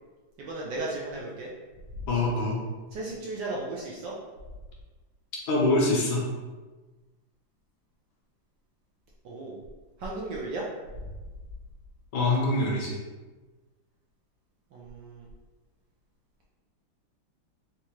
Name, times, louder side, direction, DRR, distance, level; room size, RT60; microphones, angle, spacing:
voice 1, 0.4-1.5 2.9-4.1 9.2-9.6 10.0-10.6 11.0-11.1 14.7-15.2, right 2 dB, 70° right, -4 dB, 1.1 m, -35 dB
voice 2, 2.1-2.6 5.5-6.3 12.1-13.0, left 2 dB, 75° left, -2 dB, 1.4 m, -24 dB
4.4 x 2.4 x 2.9 m, 1.2 s
omnidirectional pair, 2.4 m